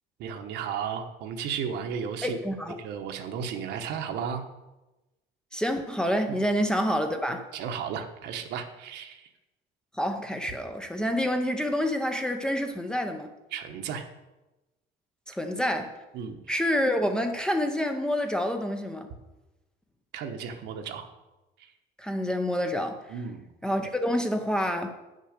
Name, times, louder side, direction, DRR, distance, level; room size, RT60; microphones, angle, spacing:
voice 1, 0.2-2.4 2.8-4.4 7.5-9.3 13.5-14.1 16.1-16.4 20.1-21.1 21.6-21.7 23.1-23.4, right 7 dB, 70° right, 6 dB, 1.2 m, -34 dB
voice 2, 2.2-2.8 5.5-7.5 9.9-13.3 15.3-16.0 16.5-19.1 22.0-23.0 23.6-24.9, equal, 5° left, 5 dB, 0.6 m, -28 dB
9.4 x 6.5 x 6.6 m, 1.0 s
cardioid pair, 175°, 18 cm